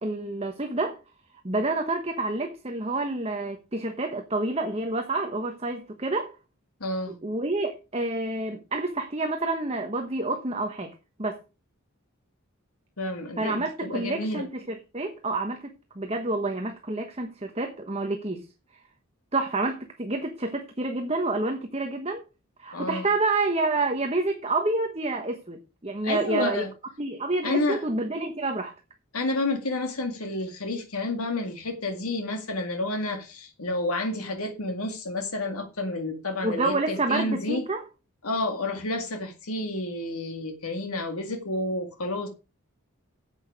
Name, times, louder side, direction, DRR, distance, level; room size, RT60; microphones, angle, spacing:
voice 1, 0.0-1.0 1.4-6.3 7.1-10.9 11.2-11.4 13.4-18.4 19.3-22.2 22.6-26.7 27.0-28.7 36.4-37.8, right 2 dB, 25° right, 1.2 m, -28 dB
voice 2, 6.8-7.2 13.0-14.5 22.7-23.1 26.0-26.7 27.4-27.8 29.1-37.6 38.2-42.3, left 2 dB, 80° left, 2.0 m, -30 dB
9.7 x 8.1 x 4.9 m
head